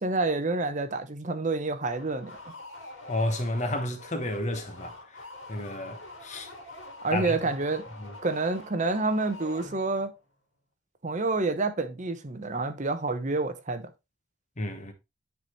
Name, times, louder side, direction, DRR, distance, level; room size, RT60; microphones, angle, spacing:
voice 1, 0.0-2.4 7.0-7.8 8.2-10.1 11.0-13.8, right 3 dB, 35° right, 0.7 m, -28 dB
sound 1, 1.8-10.1, left 2 dB, 65° left, 2.6 m, -45 dB
voice 2, 3.1-6.5 7.1-7.5 8.0-8.1 14.6-14.9, left 1 dB, 35° left, 1.1 m, -32 dB
9.7 x 4.2 x 3.0 m
head